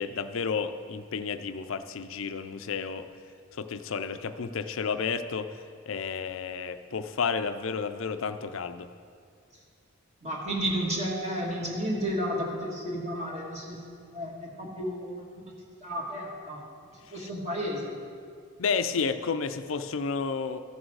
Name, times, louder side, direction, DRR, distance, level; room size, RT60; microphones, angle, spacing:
voice 1, 0.0-3.1 3.5-5.5 5.9-8.9 17.2-17.3 18.6-20.6, left 5 dB, 65° left, 10 dB, 0.5 m, -31 dB
voice 2, 10.2-13.8 14.1-15.2 15.8-16.6 17.1-18.0, equal, 35° right, -3 dB, 1.8 m, -32 dB
14.5 x 6.3 x 4.7 m, 2.2 s
head